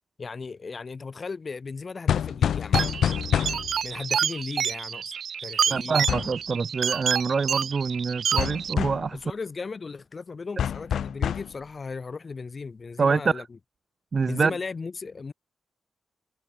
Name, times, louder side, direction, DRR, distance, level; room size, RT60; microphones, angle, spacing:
voice 1, 0.2-3.0 3.8-5.1 5.4-6.0 9.1-13.4 14.2-15.3, left 4 dB, 40° left, 4.5 m, -36 dB
sound 1, 2.1-3.8 6.1-6.4 8.4-9.1 10.6-11.5, left 9 dB, 85° left, 2.1 m, -26 dB
sound 2, 2.7-8.7, right 7 dB, 70° right, 1.8 m, -28 dB
voice 2, 5.7-9.2 13.0-13.4 14.1-14.5, right 5 dB, 45° right, 0.9 m, -25 dB
cardioid pair, 100°, 0 cm